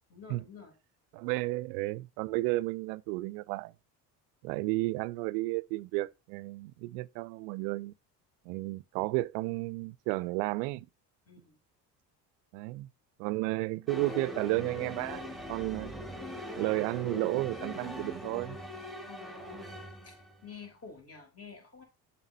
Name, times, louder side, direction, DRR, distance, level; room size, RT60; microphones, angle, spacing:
voice 1, 0.1-0.7 11.3-11.6 19.1-20.2 20.4-21.8, left 5 dB, 30° left, 3.2 m, -49 dB
voice 2, 1.1-3.7 4.4-7.9 8.5-10.9 12.5-12.9 13.2-15.9 16.6-18.6, right 21 dB, 70° right, 0.5 m, -32 dB
sound 1, 13.9-20.4, left 1 dB, ahead, 1.7 m, -41 dB
7.2 x 5.8 x 2.7 m
hypercardioid pair, 60°, 50 cm